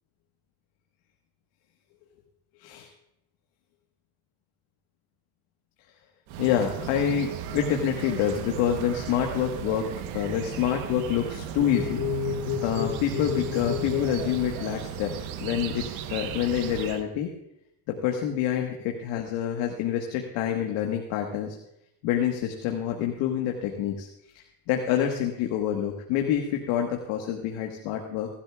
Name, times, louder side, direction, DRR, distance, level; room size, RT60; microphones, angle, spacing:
sound 1, 6.3-17.0, right 9 dB, 80° right, 1.2 m, -36 dB
voice 1, 6.4-15.1 15.4-17.3 17.9-21.6 22.0-24.1 24.7-28.3, left 9 dB, 75° left, 2 dB, 1.5 m, -27 dB
20.5 x 12.0 x 2.4 m, 0.81 s
supercardioid pair, 80°, 46 cm